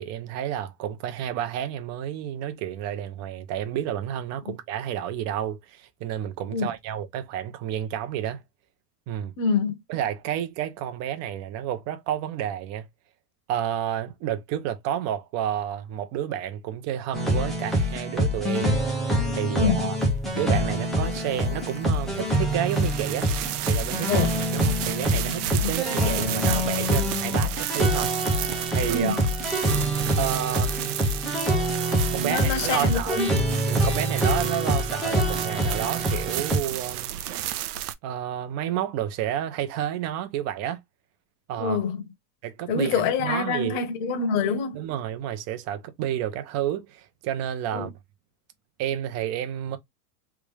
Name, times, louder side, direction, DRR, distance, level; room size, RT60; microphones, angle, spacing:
voice 1, 0.0-8.4 9.1-9.3 9.9-12.9 13.5-18.8 19.3-20.0 20.3-23.3 23.6-29.2 30.2-31.0 32.1-33.2 33.7-37.1 38.0-40.8 41.5-41.8 42.4-43.8 44.7-47.9 48.8-49.8, right 10 dB, 35° right, 0.7 m, -30 dB
voice 2, 9.4-9.8 19.5-20.0 24.1-24.3 25.6-25.7 28.9-29.1 32.0-33.4 41.6-42.1 42.7-44.8 47.7-47.9, left 5 dB, 55° left, 1.2 m, -26 dB
sound 1, 17.1-36.6, equal, ahead, 0.3 m, -25 dB
sound 2, 20.0-37.9, right 12 dB, 70° right, 0.7 m, -33 dB
3.5 x 2.5 x 3.2 m
supercardioid pair, 150°, 46 cm